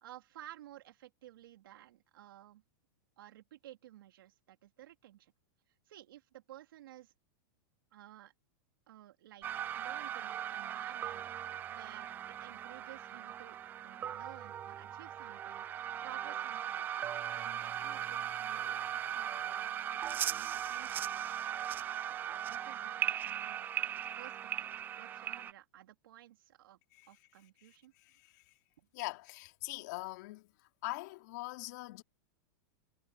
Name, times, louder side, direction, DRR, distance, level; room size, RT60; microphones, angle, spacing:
voice 1, 0.0-2.6 3.2-5.3 5.9-7.1 7.9-8.3 8.9-9.5 9.7-16.9 17.3-21.5 22.0-24.7 25.0-26.8 27.1-27.9 28.8-28.9, right 14 dB, 75° right, 3.3 m, -55 dB
sound 1, 9.4-25.5, right 10 dB, 15° right, 0.3 m, -38 dB
voice 2, 28.9-30.4 30.8-32.0, left 21 dB, 55° left, 3.4 m, -41 dB
supercardioid pair, 160°, 11 cm